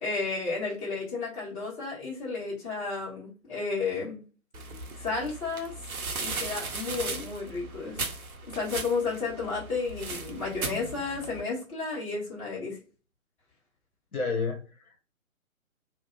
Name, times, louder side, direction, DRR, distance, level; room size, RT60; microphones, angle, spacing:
voice 1, 0.0-4.2 5.0-5.7 6.2-8.0 8.5-12.8, left 4 dB, 25° left, -7 dB, 1.2 m, -32 dB
sound 1, 4.5-11.4, right 3 dB, 85° right, 0.7 m, -37 dB
voice 2, 14.1-15.0, left 4 dB, 85° left, 2 dB, 0.8 m, -31 dB
2.5 x 2.0 x 2.5 m, 0.37 s
figure-of-eight pair, 130°, 42 cm